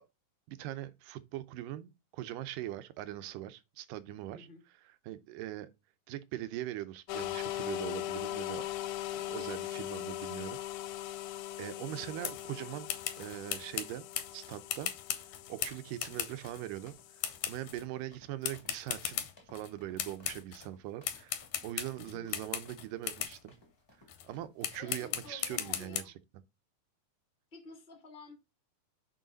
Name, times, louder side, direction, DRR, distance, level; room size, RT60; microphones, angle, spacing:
voice 1, 0.5-4.5 5.1-5.7 6.1-8.7 9.1-10.6 11.6-12.9 13.2-14.0 14.3-14.9 15.5-16.9 17.5-23.5 24.2-26.0, right 13 dB, 80° right, 2.2 m, -41 dB
sound 1, 7.1-17.8, left 15 dB, 85° left, 1.8 m, -40 dB
sound 2, 12.2-12.5 12.9-16.6 17.2-17.8 18.4-19.7 20.0-20.7 21.0-23.4 24.1-24.3 24.6-26.0, left 11 dB, 70° left, 1.9 m, -38 dB
sound 3, 15.3-25.9, left 1 dB, 10° left, 1.5 m, -61 dB
voice 2, 22.0-22.3 24.8-26.1 27.5-28.3, left 3 dB, 35° left, 0.9 m, -51 dB
6.4 x 4.7 x 3.9 m
omnidirectional pair, 4.0 m